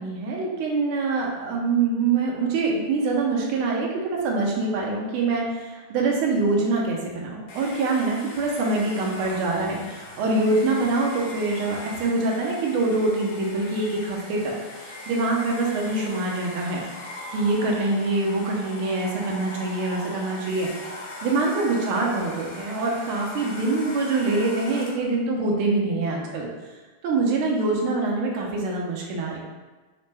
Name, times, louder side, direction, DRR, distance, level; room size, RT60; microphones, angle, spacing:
voice 1, 0.0-14.5 14.8-16.8 17.3-20.7 21.2-26.5 27.0-29.4, right 3 dB, 80° right, -2 dB, 1.6 m, -24 dB
Domestic sounds home sounds, 7.5-25.2, left 2 dB, 70° left, 1.4 m, -40 dB
5.0 x 2.2 x 3.2 m, 1.3 s
omnidirectional pair, 2.4 m